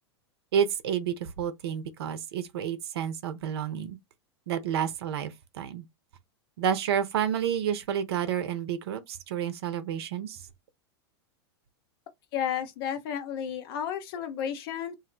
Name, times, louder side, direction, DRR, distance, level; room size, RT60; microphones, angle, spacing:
voice 1, 0.5-4.0 4.5-5.8 6.6-10.4, right 8 dB, 65° right, 0.7 m, -30 dB
voice 2, 12.3-14.9, left 9 dB, 55° left, 0.7 m, -32 dB
2.6 x 2.1 x 3.8 m
hypercardioid pair, 95°, 14 cm